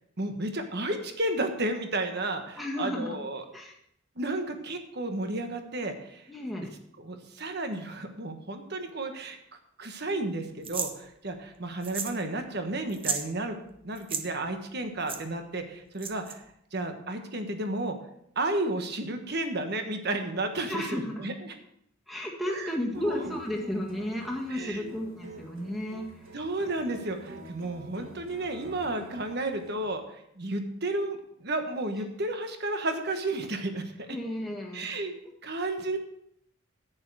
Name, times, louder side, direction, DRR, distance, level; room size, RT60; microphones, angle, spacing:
voice 1, 0.2-3.4 4.2-6.2 7.0-9.4 9.8-13.6 13.8-16.4 16.7-18.0 18.3-21.5 22.5-23.2 24.5-24.9 26.3-34.1 34.7-35.1 35.4-36.0, right 2 dB, 50° right, 6 dB, 1.3 m, -32 dB
voice 2, 2.6-3.2 3.5-3.8 6.3-6.7 20.6-21.3 22.1-26.2 34.1-34.9, left 1 dB, ahead, 0 dB, 1.9 m, -33 dB
sound 1, 10.6-10.9 11.8-12.2 12.5-12.6 12.9-13.3 14.0-14.2 15.1-15.2 16.0-16.3, right 6 dB, 25° right, 0.9 m, -32 dB
sound 2, 22.9-29.9, right 2 dB, 70° right, 1.6 m, -48 dB
10.5 x 9.2 x 4.8 m, 0.74 s
head